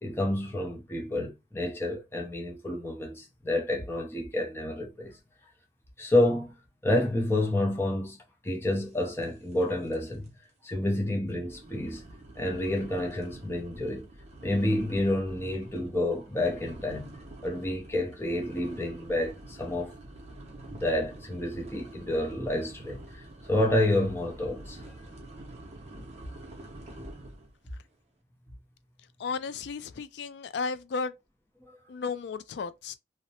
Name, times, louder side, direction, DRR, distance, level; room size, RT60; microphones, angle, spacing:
voice 1, 0.0-5.2 6.0-6.5 6.8-8.2 8.4-10.3 10.6-12.0 12.4-14.1 14.4-17.2 17.4-20.0 20.7-24.8, left 1 dB, 15° left, 0.5 m, -29 dB
sound 1, 9.2-9.6 9.9-10.3 10.7-10.8 11.4-27.5, right 1 dB, 35° right, 0.6 m, -47 dB
voice 2, 29.2-31.1 31.9-33.0, left 4 dB, 70° left, 0.3 m, -34 dB
2.7 x 2.0 x 2.7 m
head